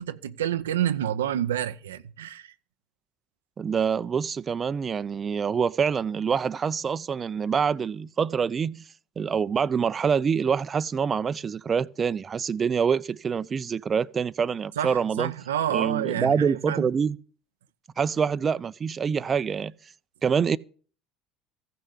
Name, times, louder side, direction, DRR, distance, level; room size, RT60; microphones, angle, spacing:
voice 1, 0.0-2.5 14.8-16.9, right 10 dB, 90° right, 0.6 m, -28 dB
voice 2, 3.6-8.8 9.2-15.3 15.7-17.2 18.0-19.7 20.2-20.6, right 6 dB, 35° right, 0.6 m, -26 dB
15.0 x 6.6 x 8.2 m
hypercardioid pair, 70°, 0 cm